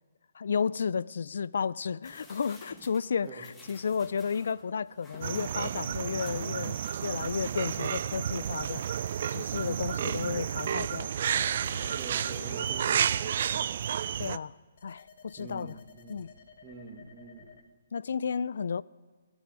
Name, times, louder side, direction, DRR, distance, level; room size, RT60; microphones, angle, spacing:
voice 1, 0.3-8.9 9.3-11.5 14.2-14.6 14.8-15.8 16.1-16.3 17.9-18.8, left 6 dB, 75° left, 0.3 m, -33 dB
sound 1, 2.0-7.7 8.1-8.2, left 2 dB, 10° left, 1.6 m, -54 dB
sound 2, 5.2-14.4, right 9 dB, 55° right, 0.3 m, -31 dB
sound 3, 11.6-13.6 14.8-17.6, left 5 dB, 55° left, 1.4 m, -50 dB
voice 2, 11.9-13.8 15.4-16.2 16.6-17.5, right 5 dB, 25° right, 2.0 m, -46 dB
17.5 x 6.3 x 9.6 m
hypercardioid pair, 150°, 0 cm